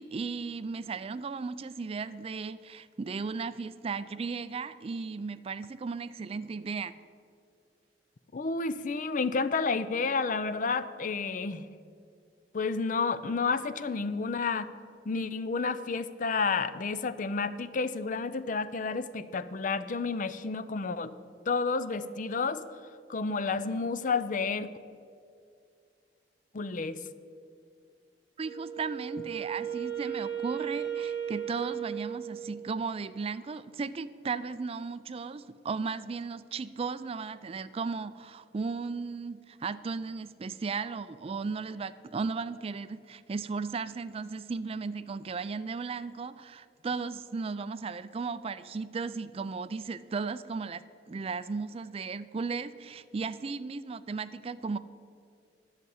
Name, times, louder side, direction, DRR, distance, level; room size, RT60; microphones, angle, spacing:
voice 1, 0.0-7.0 28.4-54.8, right 4 dB, 35° right, 14 dB, 0.3 m, -35 dB
voice 2, 8.3-11.6 12.5-14.7 15.1-21.1 21.5-22.6 23.1-24.7 26.5-27.0, left 4 dB, 50° left, 14 dB, 0.5 m, -30 dB
Wind instrument woodwind instrument, 28.4-32.8, right 9 dB, 90° left, 2.8 m, -36 dB
11.0 x 6.7 x 9.3 m, 2.3 s
head